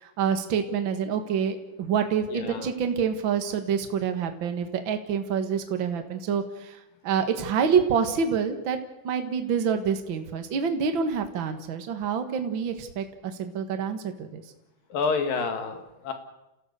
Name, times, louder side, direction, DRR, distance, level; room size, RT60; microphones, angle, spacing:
voice 1, 0.0-14.4, right 7 dB, 65° right, 7 dB, 1.2 m, -27 dB
voice 2, 2.3-2.7 14.9-16.1, left 5 dB, 60° left, 6 dB, 3.5 m, -28 dB
29.0 x 16.0 x 6.8 m, 0.94 s
omnidirectional pair, 4.9 m